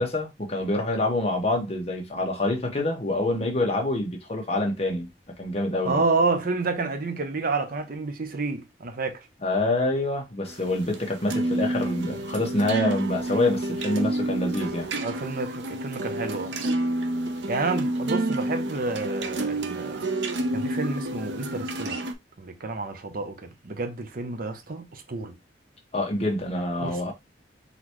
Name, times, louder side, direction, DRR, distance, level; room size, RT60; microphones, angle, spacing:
voice 1, 0.0-5.1 5.4-6.0 9.4-14.9 25.9-27.1, left 2 dB, 35° left, 1.2 m, -26 dB
voice 2, 5.8-9.3 15.0-16.5 17.5-20.1 20.5-22.0 22.4-25.4 26.8-27.1, right 3 dB, 55° right, 0.8 m, -29 dB
sound 1, 10.5-22.1, right 1 dB, 90° right, 0.7 m, -29 dB
4.0 x 3.3 x 3.0 m
head